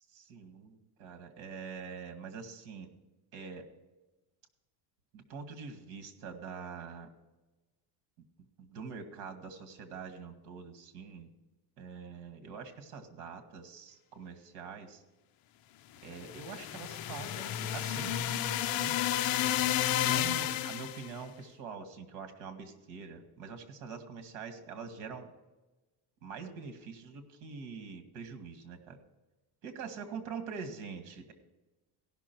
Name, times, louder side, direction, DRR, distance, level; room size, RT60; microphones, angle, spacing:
voice 1, 0.1-2.9 3.3-3.7 5.1-7.1 8.6-11.3 11.8-15.0 16.0-19.0 20.0-25.3 26.2-29.0 29.6-31.3, right 5 dB, 75° right, 7 dB, 2.0 m, -44 dB
sound 1, 16.1-21.1, left 12 dB, 45° left, 0.6 m, -31 dB
16.5 x 6.2 x 4.5 m, 1.1 s
cardioid pair, 160°, 49 cm